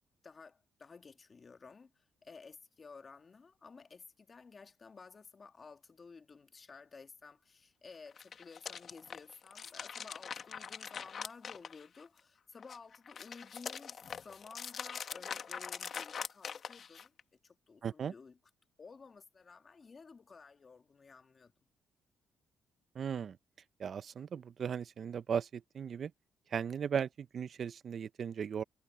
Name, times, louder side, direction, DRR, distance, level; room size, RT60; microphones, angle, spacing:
voice 1, 0.2-17.1 17.4-18.4 18.8-21.5, left 4 dB, 35° left, 1.9 m, -54 dB
sound 1, 8.1-12.2 12.6-17.2, left 7 dB, 50° left, 1.6 m, -43 dB
voice 2, 17.8-18.1 22.9-23.4 23.8-26.1 26.5-28.6, right 7 dB, 55° right, 0.6 m, -37 dB
cardioid pair, 90°, 0 cm